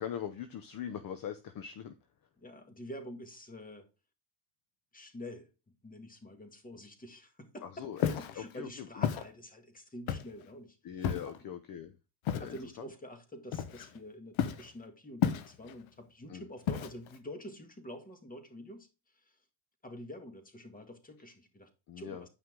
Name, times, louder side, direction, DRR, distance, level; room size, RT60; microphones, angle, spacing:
voice 1, 0.0-1.9 7.6-9.1 10.8-12.0 12.4-12.9 16.3-16.5 21.9-22.3, left 9 dB, 45° left, 0.8 m, -41 dB
voice 2, 2.4-3.9 4.9-5.5 5.8-8.1 8.3-10.8 11.3-11.4 12.4-18.9 19.1-19.4 19.8-21.7 22.0-22.3, left 1 dB, 15° left, 2.1 m, -47 dB
Walk footsteps, 8.0-8.3 9.0-9.3 10.1-10.4 11.0-11.4 12.3-12.6 13.5-14.0 14.4-14.7 15.2-15.7 16.7-17.2, left 9 dB, 75° left, 1.1 m, -32 dB
9.4 x 5.8 x 3.8 m
cardioid pair, 105°, 48 cm